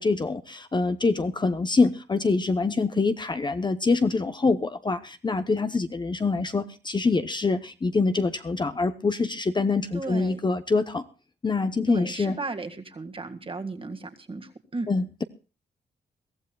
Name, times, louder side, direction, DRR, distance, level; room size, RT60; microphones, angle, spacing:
voice 1, 0.0-11.0 11.4-12.3 14.9-15.2, left 3 dB, 25° left, 9 dB, 0.8 m, -25 dB
voice 2, 9.9-10.4 11.9-14.9, right 3 dB, 30° right, 6 dB, 1.9 m, -35 dB
22.5 x 15.0 x 2.3 m, 0.34 s
wide cardioid pair, 125°, 18 cm